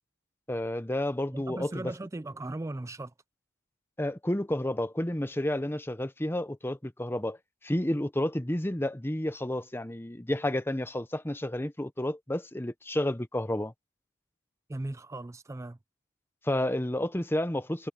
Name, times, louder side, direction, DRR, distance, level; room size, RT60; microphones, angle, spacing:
voice 1, 0.5-1.9 4.0-7.4 7.6-13.7 16.4-17.9, left 1 dB, 10° left, 0.9 m, -31 dB
voice 2, 1.3-3.1 14.7-15.8, right 2 dB, 15° right, 0.3 m, -37 dB
head